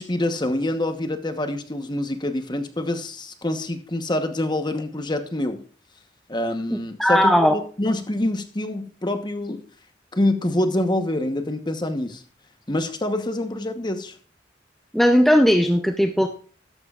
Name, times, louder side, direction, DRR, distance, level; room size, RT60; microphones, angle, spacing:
voice 1, 0.0-5.6 6.3-9.6 10.1-12.2 12.7-14.1, left 1 dB, 25° left, 7 dB, 1.0 m, -26 dB
voice 2, 7.0-7.5 14.9-16.3, equal, ahead, 5 dB, 0.6 m, -17 dB
13.5 x 11.0 x 2.4 m, 0.42 s
head